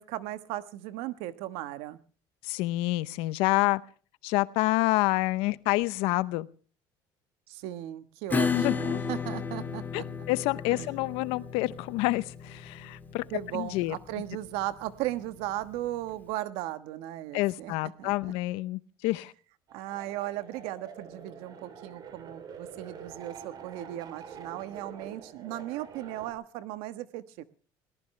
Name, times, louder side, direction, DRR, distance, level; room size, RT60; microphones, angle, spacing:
voice 1, 0.0-2.0 7.5-10.0 10.7-10.9 13.3-18.3 19.7-27.4, right 14 dB, 85° right, 12 dB, 1.3 m, -37 dB
voice 2, 2.4-3.8 4.2-6.5 8.5-9.0 9.9-13.2 13.5-14.0 17.3-19.3, left 19 dB, 85° left, 18 dB, 0.7 m, -28 dB
Acoustic guitar / Strum, 8.3-15.5, left 5 dB, 20° left, 1.8 m, -34 dB
sound 1, 19.7-26.3, right 6 dB, 45° right, 3.3 m, -46 dB
21.5 x 18.5 x 3.3 m, 0.41 s
cardioid pair, 135°, 10 cm